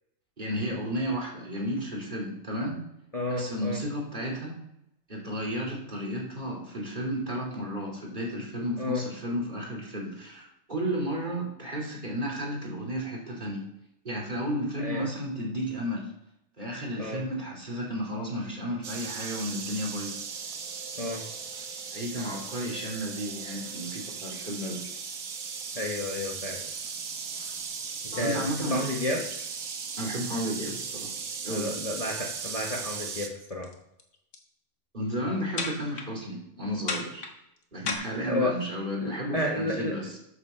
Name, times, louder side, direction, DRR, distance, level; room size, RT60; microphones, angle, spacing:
voice 1, 0.4-2.8 3.3-4.6 5.1-13.7 14.0-16.1 16.6-20.2 21.9-24.8 28.1-28.9 30.0-31.1 31.4-31.7 34.9-37.3 37.7-40.2, equal, 35° right, -1 dB, 2.9 m, -33 dB
voice 2, 3.1-3.8 8.8-9.0 14.8-15.0 17.0-17.2 21.0-21.2 25.7-26.7 28.1-29.2 31.5-33.7 38.3-38.5 39.0-40.0, left 1 dB, 30° left, -1 dB, 1.4 m, -31 dB
sound 1, 18.8-33.3, right 5 dB, 85° right, 1.5 m, -37 dB
sound 2, 27.6-27.7 28.1-29.7 30.2-30.4 30.7-30.9 31.2-31.5 31.8-33.7 34.0-34.4 35.6-36.1 36.9-37.9, left 4 dB, 80° left, 1.9 m, -36 dB
9.3 x 7.3 x 6.7 m, 0.81 s
omnidirectional pair, 1.4 m